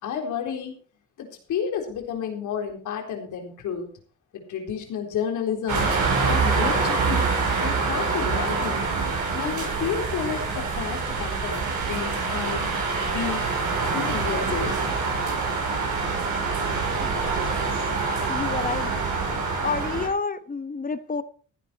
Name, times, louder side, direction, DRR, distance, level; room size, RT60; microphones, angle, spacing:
voice 1, 0.0-0.7 1.2-3.9 4.3-5.9 6.2-8.9 9.3-12.7 13.0-13.4 13.9-14.8, left 7 dB, 80° left, 2 dB, 4.0 m, -31 dB
sound 1, 5.7-20.1, right 4 dB, 75° right, 7.3 m, -25 dB
voice 2, 18.3-18.9 19.6-21.2, left 4 dB, 30° left, 12 dB, 1.3 m, -29 dB
15.0 x 10.0 x 4.3 m, 0.41 s
cardioid pair, 90°, 30 cm